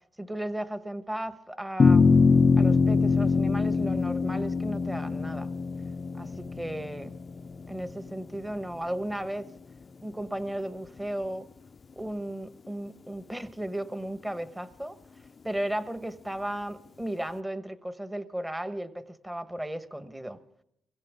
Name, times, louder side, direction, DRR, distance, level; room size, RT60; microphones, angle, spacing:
voice 1, 0.2-2.1 2.5-5.5 6.1-7.2 7.7-9.5 10.0-11.5 11.9-20.4, right 1 dB, 10° right, 11 dB, 1.3 m, -35 dB
sound 1, 1.8-8.3, left 4 dB, 35° left, 0.6 m, -23 dB
23.5 x 16.5 x 3.6 m, 0.74 s
cardioid pair, 90°, 0 cm